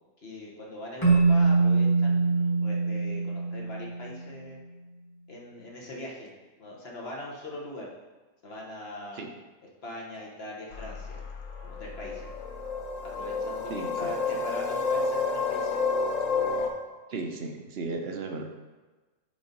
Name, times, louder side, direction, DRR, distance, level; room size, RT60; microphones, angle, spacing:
voice 1, 0.2-4.6 5.3-6.3 6.6-7.9 8.4-9.2 9.8-11.2 11.6-12.3 13.0-15.8, left 1 dB, 55° left, -3 dB, 1.3 m, -41 dB
Keyboard (musical), 1.0-4.3, right 4 dB, 20° left, 1.3 m, -23 dB
sound 1, 10.7-16.7, left 4 dB, 90° left, 1.1 m, -30 dB
voice 2, 17.1-18.4, right 3 dB, 60° right, 4 dB, 0.9 m, -35 dB
5.4 x 4.0 x 5.2 m, 1.2 s
omnidirectional pair, 1.3 m